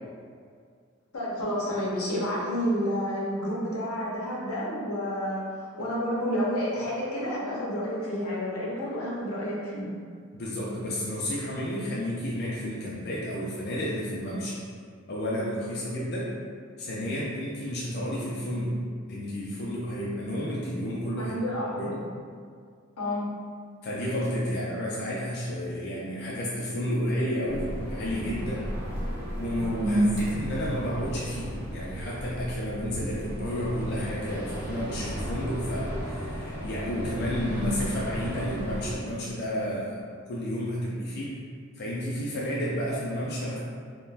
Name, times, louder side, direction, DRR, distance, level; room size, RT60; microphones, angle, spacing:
voice 1, 1.1-9.9 21.2-22.0 23.0-23.4 29.8-30.1, equal, 85° left, -5 dB, 0.7 m, -29 dB
voice 2, 10.3-14.6 15.1-16.3 16.8-18.8 19.1-21.3 21.7-21.9 23.8-28.7 29.4-41.4 41.8-43.6, equal, 50° left, -6 dB, 0.4 m, -31 dB
sound 1, 27.5-39.0, equal, 50° right, 0.7 m, -35 dB
2.4 x 2.1 x 3.2 m, 2.1 s
head